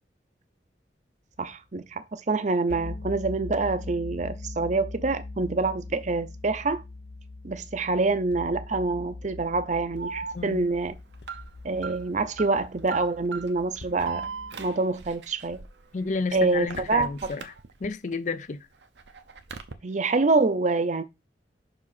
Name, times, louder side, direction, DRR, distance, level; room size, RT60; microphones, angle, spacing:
voice 1, 1.4-6.8 7.4-11.0 11.6-14.3 14.6-15.6 16.3-17.1 19.8-21.0, right 3 dB, 40° right, 0.7 m, -26 dB
sound 1, 2.7-14.7, left 2 dB, 70° left, 0.8 m, -41 dB
Alarm, 10.0-18.1 18.5-19.7, right 5 dB, 80° right, 0.9 m, -40 dB
voice 2, 10.3-10.7 15.9-17.5 17.8-18.7, left 4 dB, 45° left, 0.5 m, -31 dB
5.9 x 4.9 x 4.2 m
head